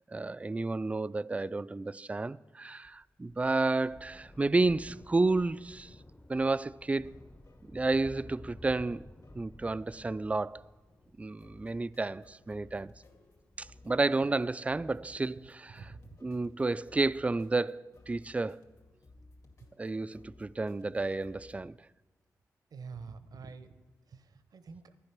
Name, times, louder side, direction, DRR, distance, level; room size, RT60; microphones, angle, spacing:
voice 1, 0.1-5.9 6.3-7.1 7.7-10.6 11.2-12.9 13.6-15.9 16.2-18.6 19.8-21.8, right 3 dB, 20° right, 0.3 m, -31 dB
Thunder, 2.8-15.7 16.6-16.7, left 1 dB, 15° left, 0.7 m, -54 dB
sound 1, 3.2-21.5, left 2 dB, 60° left, 2.2 m, -61 dB
voice 2, 15.7-16.2 22.7-23.7 24.1-24.9, right 5 dB, 70° right, 0.8 m, -47 dB
11.5 x 9.9 x 5.9 m
cardioid pair, 50°, 7 cm